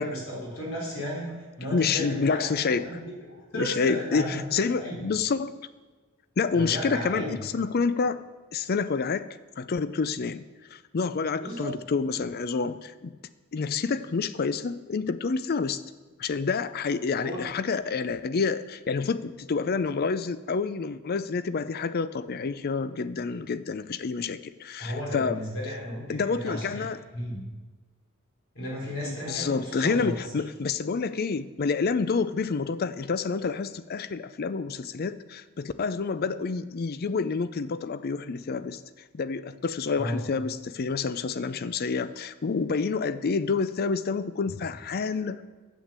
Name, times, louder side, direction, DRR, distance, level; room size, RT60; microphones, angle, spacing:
voice 1, 0.0-3.0 3.3-4.4 4.7-5.0 6.5-7.4 11.4-11.7 17.2-17.4 24.8-26.8 27.1-27.4 28.5-30.2 40.0-40.2 44.5-44.6, equal, 65° left, -2 dB, 4.0 m, -34 dB
voice 2, 1.7-2.9 3.5-5.5 6.4-8.2 8.5-9.3 9.6-10.4 10.7-13.1 13.5-15.8 16.2-25.4 26.1-27.0 29.1-38.8 39.1-45.4, left 4 dB, 45° left, 14 dB, 0.5 m, -28 dB
9.2 x 8.3 x 7.4 m, 1.3 s
head